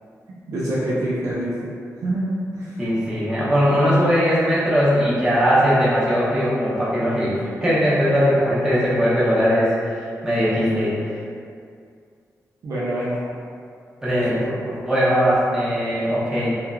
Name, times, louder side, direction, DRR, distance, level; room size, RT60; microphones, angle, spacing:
voice 1, 0.5-1.7 2.0-2.9 12.6-13.2 14.3-14.8, right 1 dB, 70° right, -8 dB, 0.5 m, -26 dB
voice 2, 2.8-7.3 7.6-11.0 14.0-14.4 14.8-16.5, equal, 10° right, -10 dB, 0.7 m, -19 dB
2.9 x 2.3 x 2.3 m, 2.3 s
wide cardioid pair, 170°, 6 cm